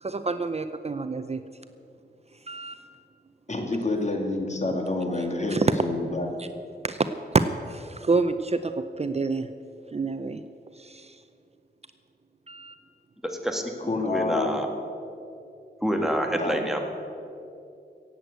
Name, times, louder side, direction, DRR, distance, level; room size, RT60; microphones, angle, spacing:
voice 1, 0.0-1.4 2.5-2.8 5.2-5.7 6.4-6.5 6.8-9.5 9.9-10.4 10.7-11.2 12.5-12.8, right 3 dB, 35° right, 10 dB, 0.6 m, -28 dB
voice 2, 3.5-6.3 13.9-14.5 16.4-16.6, left 2 dB, 40° left, 3 dB, 2.3 m, -28 dB
voice 3, 13.2-13.6 14.0-14.7 15.8-16.9, equal, ahead, 3 dB, 1.9 m, -27 dB
17.5 x 8.0 x 8.2 m, 2.6 s
wide cardioid pair, 90°, 18 cm